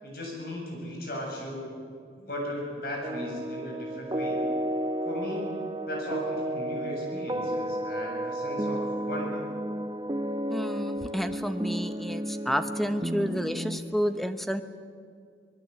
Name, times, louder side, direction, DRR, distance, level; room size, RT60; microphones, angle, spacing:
voice 1, 0.0-1.7 2.2-4.4 5.0-5.6 5.9-9.5, left 1 dB, 55° left, -1 dB, 8.0 m, -36 dB
sound 1, 3.0-13.8, right 1 dB, 20° right, 0.8 m, -32 dB
voice 2, 10.5-14.6, equal, ahead, 9 dB, 0.9 m, -30 dB
24.0 x 20.5 x 8.3 m, 2.2 s
head